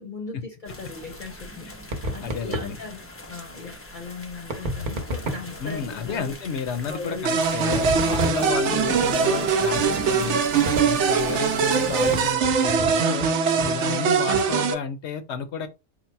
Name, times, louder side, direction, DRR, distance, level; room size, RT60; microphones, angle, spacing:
voice 1, 0.0-6.3 6.9-7.7, left 3 dB, 50° left, 0.8 m, -38 dB
sound 1, 0.6-12.3, left 1 dB, 20° left, 0.3 m, -39 dB
sound 2, 1.9-2.8 4.5-5.6 7.7-8.8 9.7-10.1 10.7-11.1 12.1-13.3 13.6-13.8 14.3-14.6, equal, 45° right, 0.9 m, -31 dB
voice 2, 2.2-2.8 5.6-10.5 10.8-13.3 13.6-15.7, left 6 dB, 75° left, 0.9 m, -31 dB
sound 3, 7.2-14.7, right 6 dB, 80° right, 0.9 m, -22 dB
3.9 x 2.1 x 4.4 m
omnidirectional pair, 1.2 m